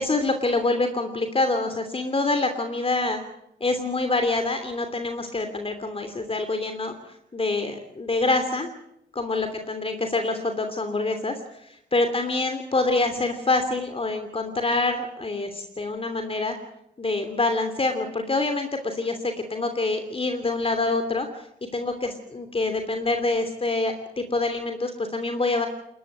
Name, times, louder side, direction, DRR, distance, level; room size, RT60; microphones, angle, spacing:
voice 1, 0.0-3.2 3.6-6.9 7.3-8.7 9.1-11.3 11.7-16.6 17.0-21.4 21.7-25.7, left 3 dB, 30° left, 7 dB, 3.0 m, -26 dB
21.0 x 20.5 x 7.5 m, 0.80 s
cardioid pair, 70°, 19 cm